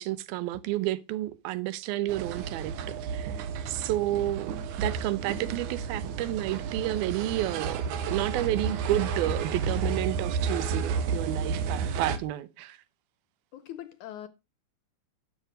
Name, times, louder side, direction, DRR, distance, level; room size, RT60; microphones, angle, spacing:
voice 1, 0.0-2.7 3.1-4.5 4.8-12.8, right 15 dB, 85° right, 2.7 m, -31 dB
sound 1, 2.1-12.2, right 5 dB, 65° right, 2.3 m, -32 dB
Explosion, 9.6-11.3, left 1 dB, 40° right, 0.6 m, -44 dB
voice 2, 11.3-11.7 13.5-14.3, left 11 dB, 70° left, 1.9 m, -43 dB
12.0 x 8.1 x 5.0 m
omnidirectional pair, 4.2 m